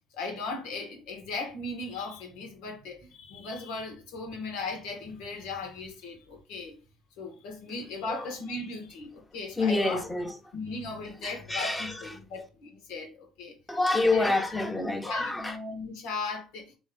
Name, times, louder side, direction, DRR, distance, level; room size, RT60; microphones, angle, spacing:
voice 1, 0.1-6.8 7.2-10.0 10.5-13.5 14.1-14.3 14.7-16.7, left 3 dB, 75° left, 1.7 m, -37 dB
voice 2, 9.6-10.4 11.2-12.2 13.7-15.6, left 2 dB, 10° left, 1.2 m, -28 dB
4.3 x 3.1 x 3.8 m
supercardioid pair, 75°, 0 cm